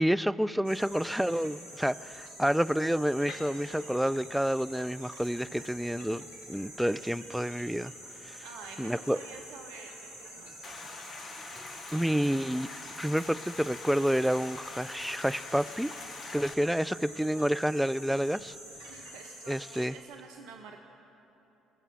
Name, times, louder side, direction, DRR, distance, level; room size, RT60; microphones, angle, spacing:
voice 1, 0.0-7.9 8.2-8.4 8.8-9.2 11.9-12.7 13.0-15.9 16.3-18.5 19.5-20.0, equal, 5° right, 15 dB, 0.3 m, -29 dB
sound 1, 0.6-19.9, right 1 dB, 85° right, 2.1 m, -47 dB
sound 2, 1.8-18.7, left 2 dB, 55° left, 1.5 m, -57 dB
voice 2, 8.4-9.9 10.2-11.0 18.9-20.8, right 5 dB, 65° right, 3 dB, 0.7 m, -48 dB
Stream, 10.6-16.5, left 4 dB, 40° left, 0.9 m, -44 dB
20.5 x 6.8 x 8.6 m, 3.0 s
figure-of-eight pair, 50°, 0 cm